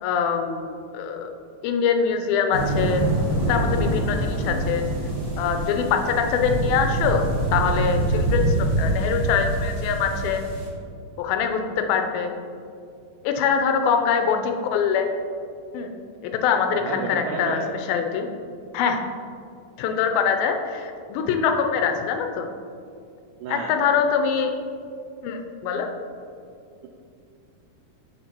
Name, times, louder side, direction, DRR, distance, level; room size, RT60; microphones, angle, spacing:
voice 1, 0.0-1.3 1.6-3.0 3.3-4.9 5.4-10.4 11.2-12.3 13.2-15.1 15.7-15.9 16.2-17.6 17.9-18.3 18.7-19.0 19.8-22.5 23.5-24.5 25.2-25.9, left 6 dB, 85° left, 5 dB, 2.4 m, -23 dB
sound 1, 2.5-10.7, right 2 dB, 40° right, 2.1 m, -25 dB
voice 2, 16.7-17.7 20.4-20.5 23.4-23.8, right 5 dB, 90° right, 0 dB, 1.8 m, -31 dB
8.3 x 5.9 x 2.9 m, 2.4 s
omnidirectional pair, 4.2 m